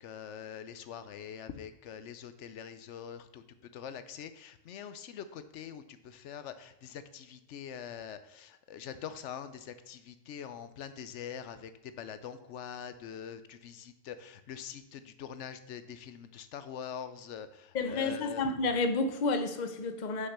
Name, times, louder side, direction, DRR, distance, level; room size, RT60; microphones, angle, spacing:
voice 1, 0.0-18.4, left 8 dB, 85° left, 1.0 m, -44 dB
voice 2, 17.7-20.3, left 3 dB, 45° left, 0.9 m, -30 dB
6.6 x 5.7 x 6.6 m
omnidirectional pair, 1.2 m